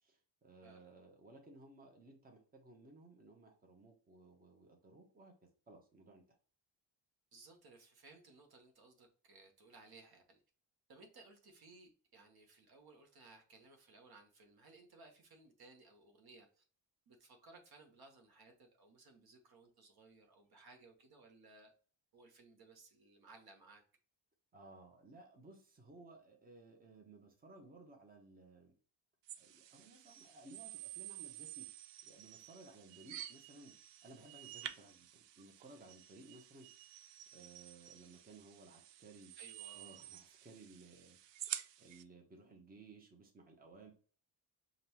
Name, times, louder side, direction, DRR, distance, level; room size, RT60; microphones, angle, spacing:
voice 1, 0.0-5.3 5.7-6.2 24.5-28.7 29.4-31.7 32.0-33.7 34.0-36.7 37.3-39.3 39.7-41.2 41.8-43.9, right 2 dB, 20° right, 2 dB, 1.0 m, -58 dB
voice 2, 7.3-10.4 10.9-16.6 17.1-21.7 22.1-23.8 39.4-39.8, right 3 dB, 55° right, 3 dB, 1.2 m, -61 dB
sound 1, 29.3-42.0, right 12 dB, 70° right, 0.5 m, -50 dB
5.2 x 2.6 x 2.9 m, 0.41 s
cardioid pair, 110°, 45 cm